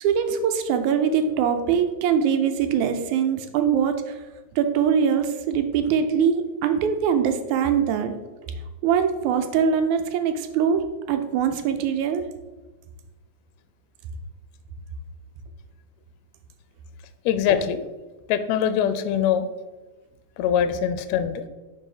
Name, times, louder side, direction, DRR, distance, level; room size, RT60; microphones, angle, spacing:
voice 1, 0.0-4.2 4.6-8.1 8.4-8.5 8.8-12.3, right 7 dB, 80° right, 7 dB, 1.9 m, -22 dB
voice 2, 17.2-17.9 18.3-19.5 20.4-21.4, left 9 dB, 80° left, 10 dB, 1.6 m, -23 dB
5.6 x 3.9 x 4.7 m, 1.2 s
omnidirectional pair, 3.4 m